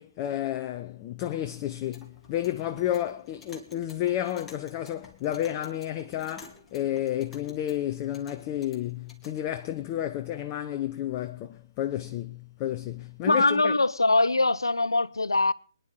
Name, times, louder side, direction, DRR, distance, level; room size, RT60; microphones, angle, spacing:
voice 1, 0.0-13.8, left 12 dB, 25° left, 0.8 m, -31 dB
Clock, 1.7-9.4, left 3 dB, 10° left, 2.2 m, -52 dB
voice 2, 13.3-15.5, left 2 dB, 85° left, 0.7 m, -22 dB
23.5 x 10.5 x 5.0 m
figure-of-eight pair, 135°, 2 cm